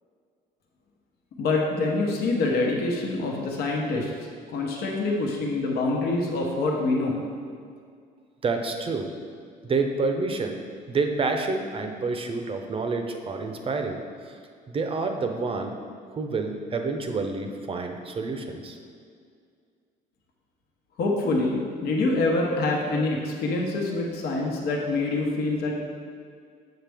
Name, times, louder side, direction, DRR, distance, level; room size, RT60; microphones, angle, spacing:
voice 1, 1.4-4.1 4.5-7.2 21.0-25.7, left 2 dB, 70° left, -1 dB, 1.1 m, -25 dB
voice 2, 8.4-9.1 9.6-10.6 10.9-14.4 14.7-15.7 16.1-18.8, right 3 dB, 35° right, 5 dB, 0.6 m, -28 dB
7.8 x 5.8 x 3.5 m, 2.2 s
cardioid pair, 110°, 17 cm